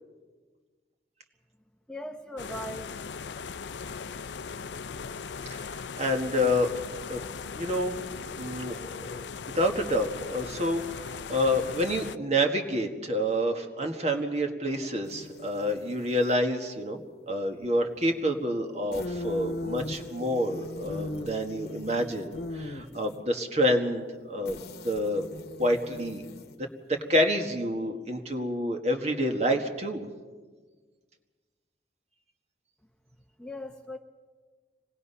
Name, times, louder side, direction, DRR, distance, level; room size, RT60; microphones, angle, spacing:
voice 1, 1.9-3.0 33.4-34.0, left 1 dB, 5° left, 4 dB, 0.7 m, -39 dB
sound 1, 2.4-12.2, left 5 dB, 85° left, 0.5 m, -39 dB
voice 2, 5.5-6.7 7.1-7.2 7.6-8.0 8.3-17.0 17.3-25.2 25.6-26.2 26.9-30.1, equal, 40° right, 4 dB, 1.7 m, -28 dB
sound 2, 15.0-16.4 18.9-23.2 24.4-26.7, left 2 dB, 60° left, 1.1 m, -39 dB
25.5 x 19.5 x 5.6 m, 1.4 s
head